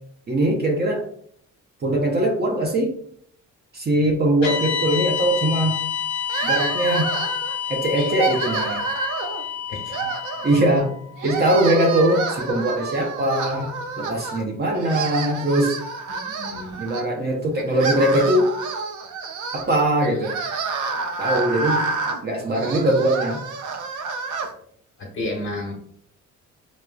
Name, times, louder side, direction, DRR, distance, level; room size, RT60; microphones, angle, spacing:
voice 1, 0.3-1.1 1.8-2.9 3.7-5.8 6.4-7.1 7.7-8.9 10.4-10.9 11.2-15.8 16.8-18.5 19.5-20.4 21.2-21.9 22.2-23.4, right 1 dB, 35° right, 2 dB, 0.6 m, -21 dB
sound 1, 4.4-12.7, left 8 dB, 60° left, 0.9 m, -29 dB
sound 2, 6.3-7.6 8.0-9.4 9.9-10.9 11.2-14.4 14.7-17.0 17.6-24.5, right 4 dB, 80° right, 0.5 m, -28 dB
voice 2, 9.7-10.1 13.6-13.7 16.1-16.8 25.0-25.7, left 2 dB, 40° left, 0 dB, 1.1 m, -32 dB
4.5 x 2.0 x 2.3 m, 0.63 s
cardioid pair, 90°, 30 cm